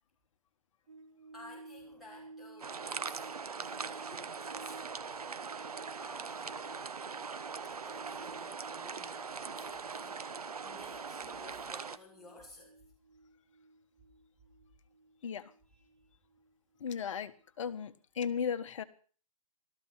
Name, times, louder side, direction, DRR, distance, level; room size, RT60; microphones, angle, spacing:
sound 1, 0.9-17.4 17.7-17.8, right 2 dB, 55° right, 4.0 m, -55 dB
voice 1, 1.3-3.3 3.6-5.0 6.0-6.9 7.8-12.8 15.7-15.8, left 2 dB, ahead, 6.4 m, -55 dB
sound 2, 2.6-12.0, right 5 dB, 80° right, 1.2 m, -41 dB
voice 2, 16.8-17.3 17.6-18.8, left 7 dB, 55° left, 1.6 m, -35 dB
17.5 x 13.5 x 5.8 m
hypercardioid pair, 135°, 19 cm